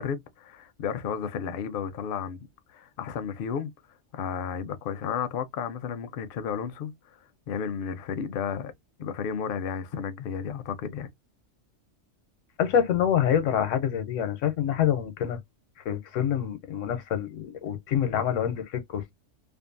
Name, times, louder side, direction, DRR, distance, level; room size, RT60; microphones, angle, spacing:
voice 1, 0.0-3.7 4.1-6.9 7.5-8.7 9.0-11.1, left 7 dB, 60° left, 0.6 m, -33 dB
voice 2, 12.6-15.4 15.8-19.1, left 9 dB, 85° left, 1.0 m, -26 dB
2.6 x 2.4 x 2.4 m
omnidirectional pair, 1.3 m